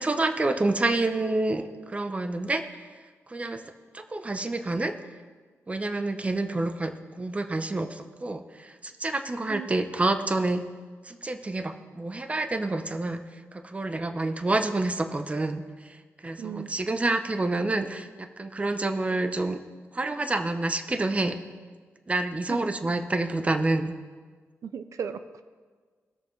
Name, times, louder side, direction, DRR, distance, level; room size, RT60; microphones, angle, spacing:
voice 1, 0.0-2.6 3.3-4.9 5.7-10.6 11.0-19.6 19.9-21.4 22.1-24.0, right 2 dB, 25° right, 8 dB, 0.7 m, -28 dB
voice 2, 16.4-16.8 22.5-22.9 24.6-25.4, right 7 dB, 75° right, 10 dB, 0.4 m, -36 dB
20.0 x 6.7 x 3.2 m, 1.5 s
cardioid pair, 90°, 5 cm